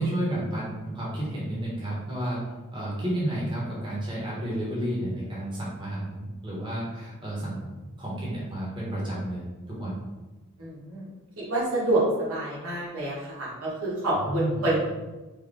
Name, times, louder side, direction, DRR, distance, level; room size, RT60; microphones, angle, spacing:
voice 1, 0.0-2.4 2.7-9.4 9.7-9.9 14.1-14.7, right 1 dB, 25° right, -6 dB, 1.0 m, -31 dB
voice 2, 10.6-11.1 11.5-14.9, right 1 dB, 85° right, -6 dB, 1.3 m, -27 dB
3.6 x 2.2 x 3.7 m, 1.2 s
head